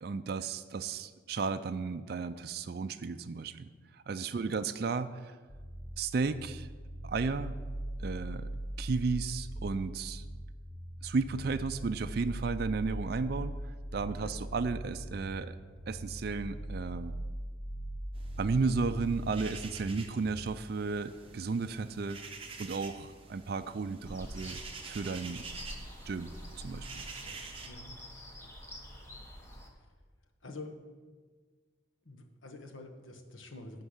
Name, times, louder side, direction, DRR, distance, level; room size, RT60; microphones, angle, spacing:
voice 1, 0.0-5.4 6.0-6.7 7.0-7.6 8.0-8.5 8.8-10.2 11.0-15.6 15.9-17.2 18.4-22.2 22.6-24.6 24.9-25.4 26.1-27.0, right 4 dB, 50° right, 10 dB, 0.4 m, -34 dB
sound 1, 5.5-20.5, right 1 dB, 35° left, 0.8 m, -41 dB
sound 2, 18.1-27.7, right 4 dB, 30° right, 0.8 m, -48 dB
sound 3, 24.0-29.7, equal, 15° left, 1.1 m, -47 dB
voice 2, 27.2-27.9 30.4-30.7 32.1-33.8, left 2 dB, 80° left, 3 dB, 1.2 m, -47 dB
11.5 x 4.6 x 8.0 m, 1.5 s
head